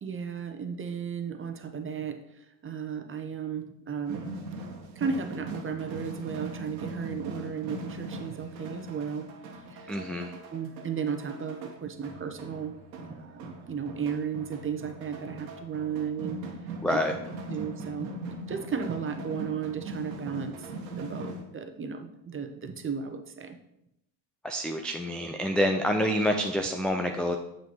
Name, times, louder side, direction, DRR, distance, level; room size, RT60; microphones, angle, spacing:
voice 1, 0.0-2.2 2.6-4.2 5.0-9.3 9.7-10.0 10.5-12.7 13.0-16.4 16.9-17.0 17.5-18.1 18.5-20.5 21.0-23.6, right 6 dB, 25° right, 7 dB, 1.0 m, -34 dB
sound 1, 4.1-21.4, right 2 dB, 85° right, 1.5 m, -40 dB
voice 2, 9.9-10.4 16.8-17.1 24.4-27.4, equal, ahead, 4 dB, 0.3 m, -27 dB
7.4 x 5.8 x 4.6 m, 0.83 s
supercardioid pair, 90°, 50 cm